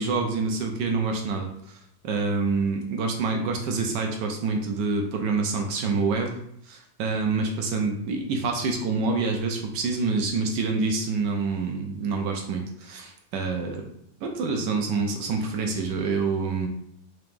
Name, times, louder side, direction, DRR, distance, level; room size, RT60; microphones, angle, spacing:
voice 1, 0.0-1.5 2.0-6.3 6.7-13.8 14.2-16.7, right 4 dB, 70° right, 2 dB, 1.2 m, -27 dB
3.8 x 2.9 x 3.5 m, 0.69 s
omnidirectional pair, 2.1 m